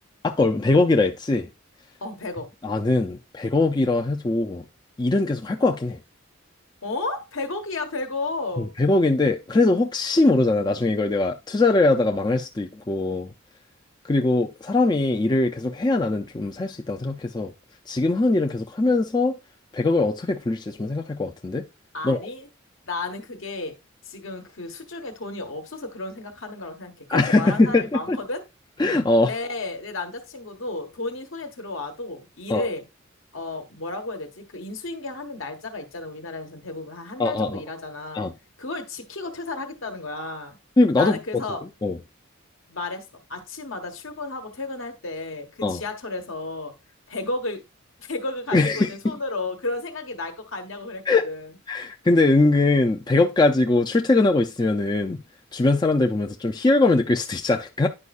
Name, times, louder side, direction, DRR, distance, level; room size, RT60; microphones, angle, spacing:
voice 1, 0.2-1.5 2.6-4.6 5.0-6.0 8.6-13.3 14.0-17.5 17.9-19.3 19.7-21.7 22.0-22.3 27.1-28.2 28.8-29.3 32.5-32.7 37.2-37.6 38.1-38.3 40.8-41.4 41.8-42.0 45.6-45.8 48.5-48.9 51.1-51.2 51.7-55.2 55.5-57.9, left 2 dB, 20° left, 0.4 m, -21 dB
voice 2, 2.0-2.5 6.8-8.7 21.9-22.5 22.8-23.8 24.0-28.4 29.3-32.8 33.3-38.2 38.6-40.6 41.0-41.6 42.7-46.7 47.1-47.6 48.0-51.5, left 2 dB, 70° left, 1.2 m, -33 dB
9.7 x 5.2 x 2.4 m
head